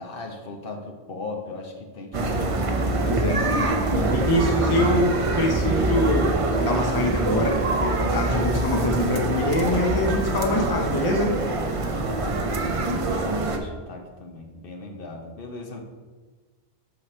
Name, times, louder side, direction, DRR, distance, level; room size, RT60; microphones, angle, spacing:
voice 1, 0.0-3.5 4.0-4.1 11.9-15.8, left 3 dB, 65° left, 3 dB, 1.0 m, -38 dB
sound 1, 2.1-13.6, right 2 dB, 40° right, 0.5 m, -24 dB
voice 2, 3.0-3.6 4.0-6.3 6.6-11.3, left 1 dB, 25° left, 2 dB, 0.7 m, -24 dB
6.4 x 4.8 x 4.3 m, 1.3 s
omnidirectional pair, 1.0 m